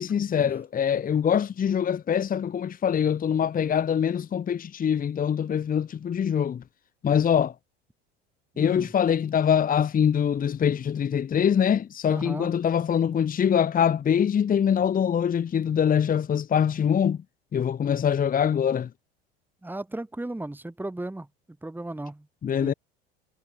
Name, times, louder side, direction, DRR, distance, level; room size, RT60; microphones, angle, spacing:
voice 1, 0.0-6.6 7.0-7.5 8.6-17.2 17.5-18.9 22.4-22.7, left 8 dB, 25° left, 1.3 m, -24 dB
voice 2, 8.5-8.9 12.1-12.5 19.6-21.3 21.6-22.3 22.6-22.7, right 2 dB, 5° right, 2.9 m, -35 dB
hypercardioid pair, 75°, 31 cm